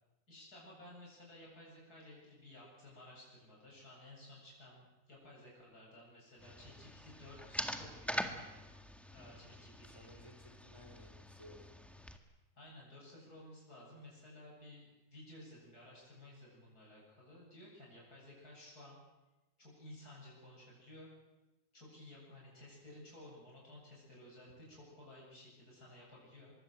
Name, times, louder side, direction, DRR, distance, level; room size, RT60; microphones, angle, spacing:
voice 1, 0.3-8.6 9.1-10.3 12.6-19.0 19.6-21.1 21.7-26.5, left 1 dB, 75° left, -3 dB, 8.6 m, -55 dB
sound 1, 6.4-12.2, equal, ahead, 1.7 m, -44 dB
voice 2, 9.8-11.8, left 1 dB, 15° left, 4 dB, 4.4 m, -58 dB
24.5 x 22.5 x 7.8 m, 1.1 s
omnidirectional pair, 1.7 m